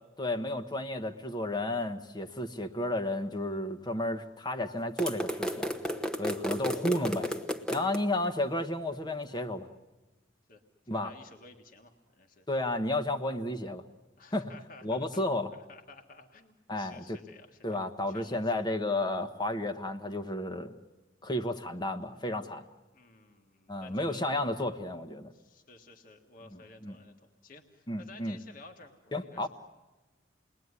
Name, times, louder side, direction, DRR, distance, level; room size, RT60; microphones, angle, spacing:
voice 1, 0.2-5.7 6.2-7.4 7.7-9.7 10.9-11.1 12.5-13.8 14.3-14.5 14.8-15.5 16.7-17.2 17.6-20.7 21.2-22.6 23.7-25.3 26.5-27.0 27.9-28.4 29.1-29.5, left 1 dB, 20° left, 8 dB, 1.2 m, -32 dB
sound 1, 5.0-8.0, equal, 5° left, 1.1 m, -33 dB
voice 2, 7.8-8.6 10.5-10.6 10.9-12.5 14.2-15.2 15.5-17.8 18.1-18.5 22.9-24.2 25.3-29.5, left 3 dB, 45° left, 3 dB, 1.7 m, -54 dB
29.0 x 21.0 x 9.7 m, 1.2 s
head